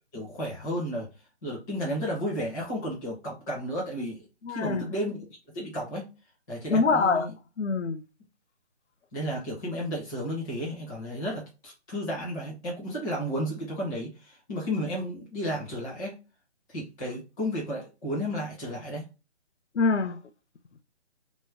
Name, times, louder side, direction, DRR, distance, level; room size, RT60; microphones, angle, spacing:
voice 1, 0.1-1.1 1.4-4.2 4.5-5.3 5.5-6.1 6.5-7.3 9.1-16.1 16.7-19.1, equal, 5° right, 0.5 m, -33 dB
voice 2, 4.4-4.9 6.7-8.0 19.7-20.2, left 4 dB, 85° left, 0.6 m, -25 dB
3.1 x 2.1 x 3.6 m
figure-of-eight pair, 150°, 34 cm